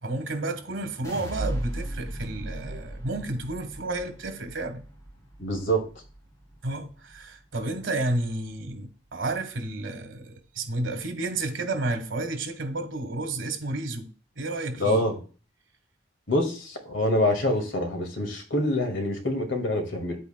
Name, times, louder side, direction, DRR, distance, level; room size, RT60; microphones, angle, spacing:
voice 1, 0.0-4.8 6.6-14.1 14.4-15.1, right 2 dB, 80° right, 1.4 m, -31 dB
sound 1, 1.0-7.2 7.6-8.2, right 1 dB, 20° left, 2.6 m, -37 dB
voice 2, 5.4-5.9 14.8-15.2 16.3-20.2, left 1 dB, 75° left, 2.1 m, -25 dB
9.2 x 8.3 x 2.3 m
head